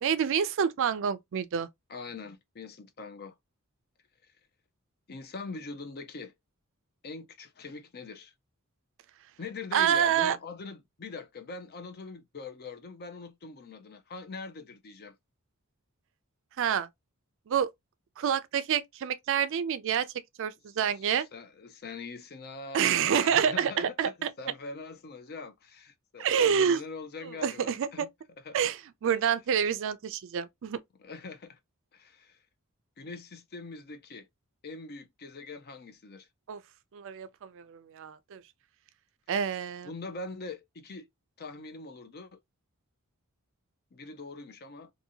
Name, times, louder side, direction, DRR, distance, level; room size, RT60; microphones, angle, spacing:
voice 1, 0.0-1.7 9.7-10.4 16.6-16.9 17.5-17.7 18.2-20.1 20.4-21.3 22.7-24.3 26.2-26.8 27.4-28.1 28.5-30.8 36.5-36.6 36.9-38.4 39.3-39.9, right 8 dB, 60° right, 0.4 m, -27 dB
voice 2, 1.9-3.3 5.1-6.3 7.0-8.3 9.4-15.2 21.0-21.1 21.3-28.1 28.4-28.7 31.0-31.6 31.9-32.4 33.0-34.3 34.6-36.3 39.8-41.1 41.4-42.4 43.9-44.9, left 3 dB, 45° left, 0.5 m, -42 dB
2.7 x 2.6 x 2.7 m
head